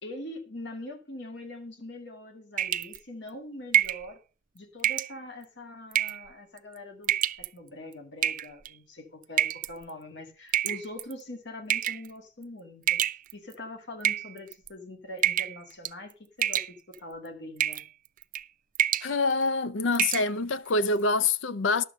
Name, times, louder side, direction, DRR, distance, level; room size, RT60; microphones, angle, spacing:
voice 1, 0.0-4.2 4.5-13.0 13.3-16.1 16.4-17.8, left 1 dB, 65° left, 2.1 m, -43 dB
sound 1, 2.6-3.0 3.7-4.0 4.8-5.1 5.9-6.3 7.0-7.5 8.2-8.7 9.4-9.7 10.5-11.1 11.7-12.1 12.9-13.5 14.0-14.7 15.2-15.6 15.8-16.1 16.4-17.0 17.6-17.9 18.2-18.4 18.7-19.1 19.5-19.6 19.9-20.3, right 10 dB, 45° right, 0.5 m, -27 dB
voice 2, 19.0-21.8, left 3 dB, 85° left, 0.6 m, -26 dB
11.5 x 6.9 x 5.3 m
head